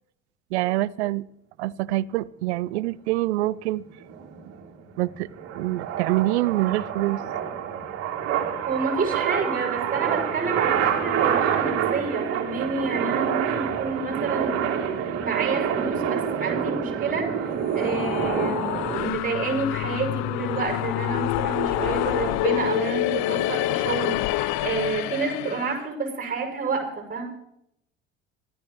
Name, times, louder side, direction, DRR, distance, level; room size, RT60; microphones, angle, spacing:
voice 1, 0.5-1.3 1.6-3.8 5.0-5.3 5.6-7.2, right 17 dB, 70° right, 22 dB, 0.6 m, -25 dB
sound 1, 3.8-19.1, right 8 dB, 45° right, 3.2 m, -27 dB
voice 2, 8.6-14.6 15.2-27.2, right 4 dB, 25° right, 1 dB, 6.2 m, -29 dB
sound 2, 17.5-25.8, left 16 dB, 50° left, 0.6 m, -27 dB
24.5 x 13.0 x 3.1 m, 0.78 s
figure-of-eight pair, 60°, 35 cm